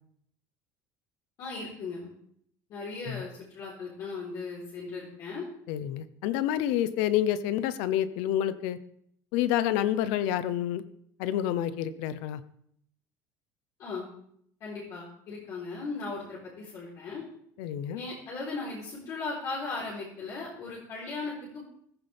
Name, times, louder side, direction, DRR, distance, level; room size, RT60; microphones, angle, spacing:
voice 1, 1.4-2.1 2.7-5.4 13.8-14.1 14.6-17.2 18.0-21.6, left 3 dB, 45° left, -5 dB, 4.0 m, -37 dB
voice 2, 5.7-8.8 9.3-10.8 11.2-12.4 17.6-18.0, left 11 dB, 80° left, 14 dB, 0.9 m, -28 dB
15.0 x 14.0 x 3.6 m, 0.67 s
cardioid pair, 160°, 8 cm